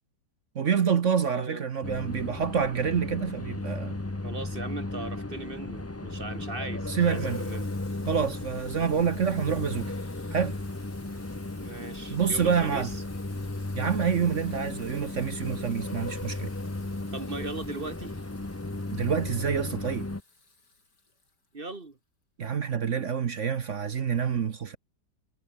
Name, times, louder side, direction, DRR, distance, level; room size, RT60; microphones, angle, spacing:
voice 1, 0.5-4.0 6.9-7.4 8.1-9.9 10.3-10.5 12.1-12.9 13.7-16.5 18.9-20.1 22.4-24.8, right 7 dB, 50° right, 1.1 m, -27 dB
voice 2, 1.3-1.6 4.1-7.7 8.9-9.0 11.5-13.0 17.1-18.1 21.5-22.0, right 3 dB, 30° right, 2.1 m, -38 dB
sound 1, 1.8-20.2, left 2 dB, 15° left, 0.5 m, -35 dB
Water tap faucet / Sink (filling or washing), 7.0-21.8, left 3 dB, 65° left, 5.3 m, -55 dB
omnidirectional pair, 2.0 m